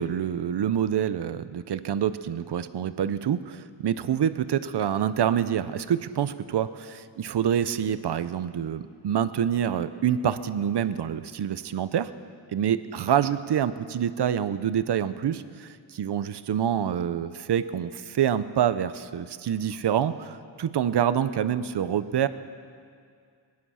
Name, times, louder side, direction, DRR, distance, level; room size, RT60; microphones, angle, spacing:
voice 1, 0.0-12.1 12.5-22.3, right 9 dB, 55° right, 13 dB, 0.7 m, -26 dB
22.0 x 10.5 x 5.7 m, 2.2 s
wide cardioid pair, 105°, 48 cm